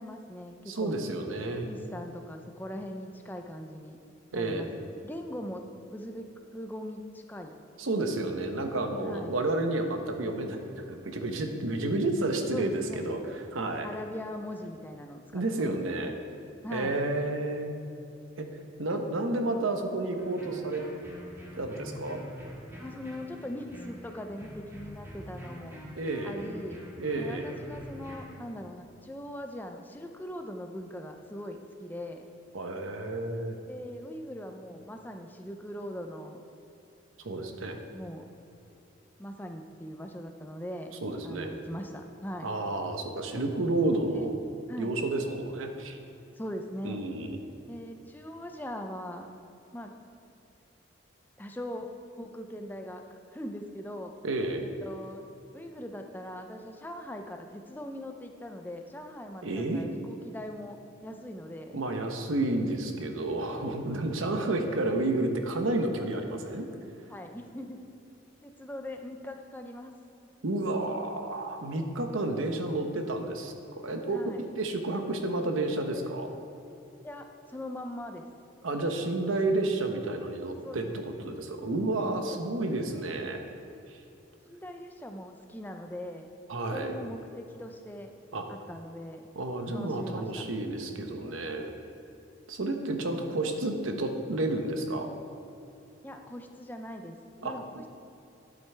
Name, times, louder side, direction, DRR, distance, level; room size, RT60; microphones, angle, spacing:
voice 1, 0.0-4.0 4.3-5.6 5.9-6.3 6.5-7.6 9.0-9.3 12.5-13.0 13.8-15.7 16.6-16.9 22.8-25.8 26.2-26.8 27.2-32.3 33.7-36.4 37.9-38.3 39.2-40.9 41.2-42.5 44.1-44.3 44.7-44.9 46.4-47.0 47.7-49.3 49.7-49.9 51.4-51.9 52.2-53.0 53.3-54.1 54.8-55.3 55.5-61.8 67.1-67.8 68.4-69.9 74.1-74.4 77.0-78.2 80.6-80.9 84.5-86.3 86.7-88.1 88.5-89.3 89.7-90.4 96.0-97.1 97.4-97.9, equal, 10° left, 4 dB, 0.5 m, -41 dB
voice 2, 0.7-1.7 4.3-4.7 7.8-13.9 15.3-16.1 16.7-17.7 18.4-18.5 18.8-20.8 21.5-22.2 26.0-26.4 27.0-27.6 32.5-33.6 37.2-37.8 41.0-41.5 42.4-44.4 44.8-46.0 46.8-47.4 54.2-54.7 59.4-59.8 61.7-66.7 70.4-76.3 78.6-83.4 83.9-84.0 86.5-87.0 88.3-88.5 89.3-91.7 92.5-95.1 97.4-97.8, right 2 dB, 80° right, 5 dB, 0.9 m, -31 dB
sound 1, 20.2-28.3, equal, 15° right, 1.6 m, -45 dB
12.0 x 7.6 x 3.4 m, 2.7 s
head